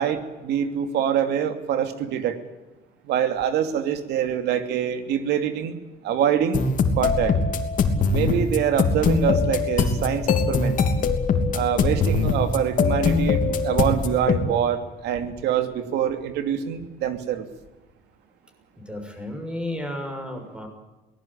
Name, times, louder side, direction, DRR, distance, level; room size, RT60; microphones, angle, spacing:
voice 1, 0.0-2.4 3.0-5.8 6.0-6.6 7.0-7.4 8.1-10.8 11.5-17.5, right 9 dB, 80° right, 8 dB, 2.7 m, -25 dB
sound 1, 6.5-14.4, left 4 dB, 50° left, 3.1 m, -22 dB
voice 2, 18.8-20.7, left 1 dB, 5° right, 5 dB, 6.5 m, -33 dB
23.0 x 19.0 x 8.8 m, 1.1 s
cardioid pair, 110°, 17 cm